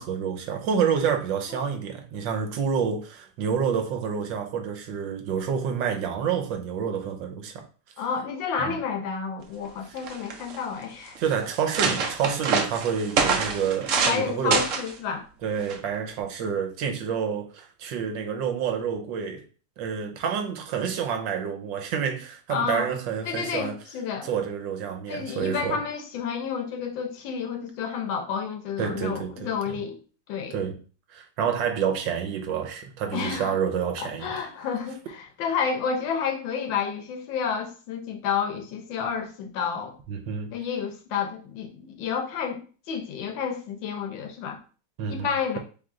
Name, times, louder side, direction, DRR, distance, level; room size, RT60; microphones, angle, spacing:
voice 1, 0.0-7.7 8.6-8.8 11.2-14.6 15.4-19.4 19.8-23.8 24.2-25.8 28.8-29.5 30.5-30.8 31.1-34.4 40.1-40.5 45.0-45.6, right 7 dB, 80° right, 1.5 m, -28 dB
voice 2, 8.0-11.2 13.9-15.3 22.5-22.9 23.2-24.3 25.1-30.0 30.3-30.6 33.1-33.5 34.0-40.0 40.5-44.6 45.1-45.6, left 6 dB, 85° left, 1.5 m, -30 dB
sound 1, 9.6-9.7 10.0-10.6 11.2-11.3 11.5-14.2 14.5-14.9 15.7-16.0, right 5 dB, 60° right, 0.8 m, -25 dB
3.7 x 3.2 x 3.7 m
omnidirectional pair, 2.0 m